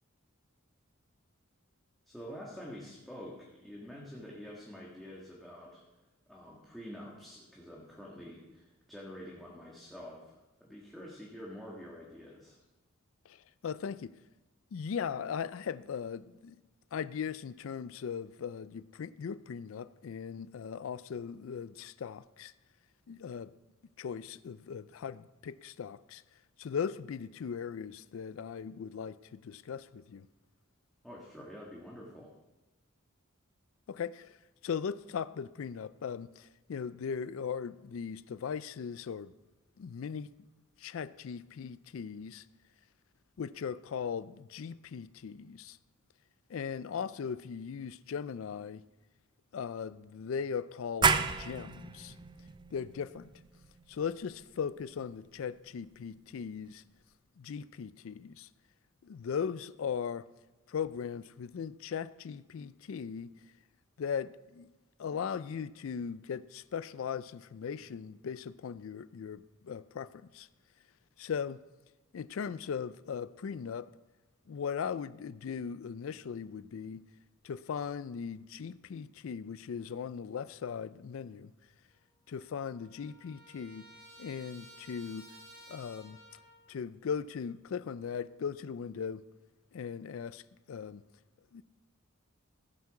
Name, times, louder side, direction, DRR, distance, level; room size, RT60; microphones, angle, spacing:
voice 1, 2.1-5.8 6.3-12.6 31.0-32.3, equal, ahead, 1.6 m, -47 dB
voice 2, 13.3-14.2 14.7-16.6 16.9-22.5 23.1-23.5 24.0-26.2 26.6-30.3 33.9-34.4 34.6-39.3 39.8-40.3 40.8-42.4 43.4-45.8 46.5-48.8 49.5-52.1 52.7-53.3 53.9-56.8 57.4-58.5 59.0-60.3 60.7-63.3 64.0-64.7 65.0-70.5 71.2-71.6 72.1-73.9 74.5-77.1 77.4-81.5 82.3-83.9 84.2-85.3 85.7-86.2 86.7-89.2 89.7-90.4 90.7-91.0 91.5-91.6, left 6 dB, 70° left, 0.4 m, -38 dB
sound 1, 51.0-56.4, right 5 dB, 20° right, 0.4 m, -34 dB
Trumpet, 81.9-82.0 82.3-86.7, equal, 50° right, 3.4 m, -55 dB
15.5 x 8.3 x 4.8 m
head